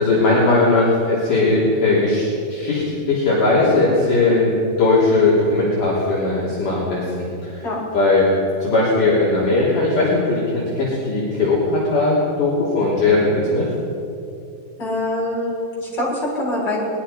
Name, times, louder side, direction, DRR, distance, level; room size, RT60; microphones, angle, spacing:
voice 1, 0.0-4.5 4.8-7.6 7.9-8.3 8.6-13.7, left 2 dB, 50° left, -7 dB, 4.8 m, -18 dB
voice 2, 14.8-16.9, left 1 dB, 25° left, -5 dB, 6.9 m, -24 dB
23.5 x 21.0 x 5.8 m, 2.6 s
omnidirectional pair, 4.8 m